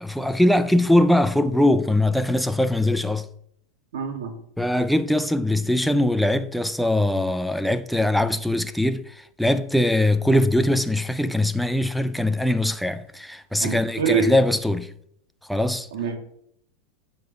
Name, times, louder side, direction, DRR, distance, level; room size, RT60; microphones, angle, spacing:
voice 1, 0.0-3.3 4.6-9.0 9.4-14.9 15.5-15.9, left 1 dB, ahead, 0.4 m, -21 dB
voice 2, 3.9-4.4 13.6-14.3 15.9-16.2, right 6 dB, 90° right, 2.3 m, -25 dB
7.1 x 6.6 x 7.8 m
supercardioid pair, 175°, 0 cm